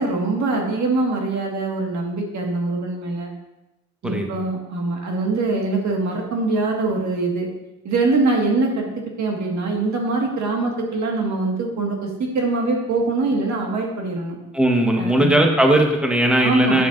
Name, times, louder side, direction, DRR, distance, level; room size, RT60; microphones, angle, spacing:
voice 1, 0.0-3.3 4.0-7.5 7.8-8.9 9.2-14.4 15.0-15.4 16.4-16.8, right 3 dB, 65° right, 1 dB, 1.8 m, -23 dB
voice 2, 14.5-16.9, right 1 dB, 5° right, 2 dB, 1.2 m, -18 dB
9.4 x 6.9 x 2.6 m, 0.97 s
cardioid pair, 90°, 30 cm